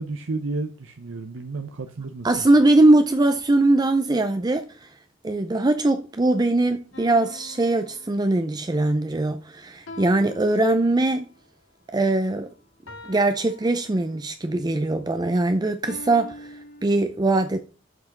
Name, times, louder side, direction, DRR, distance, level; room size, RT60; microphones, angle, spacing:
voice 1, 0.0-2.5, right 3 dB, 70° right, 0.7 m, -32 dB
voice 2, 2.2-4.9 5.2-11.3 11.9-12.5 13.0-17.6, right 2 dB, 20° right, 0.5 m, -21 dB
sound 1, 6.9-8.7 9.9-11.3 12.9-14.4 15.9-16.9, left 1 dB, 80° left, 2.0 m, -43 dB
7.4 x 5.9 x 6.5 m
head